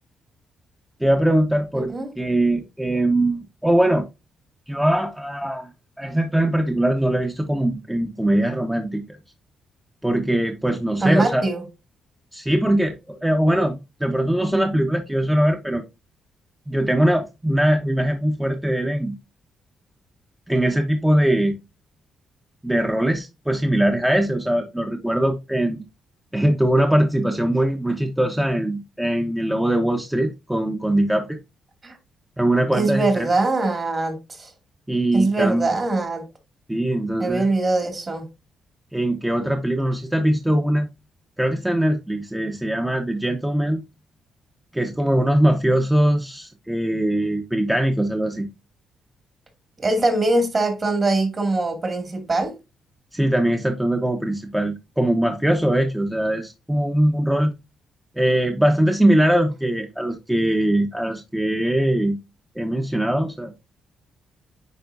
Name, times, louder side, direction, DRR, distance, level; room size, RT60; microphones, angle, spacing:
voice 1, 1.0-4.1 4.7-5.7 6.0-9.0 10.0-11.4 12.3-15.8 16.7-19.1 20.5-21.6 22.6-25.8 26.3-31.4 32.4-33.3 34.9-35.7 36.7-37.5 38.9-40.9 41.4-43.8 44.7-48.5 53.1-57.5 58.1-62.2 62.6-63.5, right 1 dB, 5° right, 1.0 m, -21 dB
voice 2, 1.7-2.1 11.0-11.6 31.8-32.0 32.7-34.5 35.1-36.2 37.2-38.2 49.8-52.5, right 2 dB, 40° right, 2.4 m, -22 dB
9.4 x 4.2 x 2.7 m
supercardioid pair, 65°, 0 cm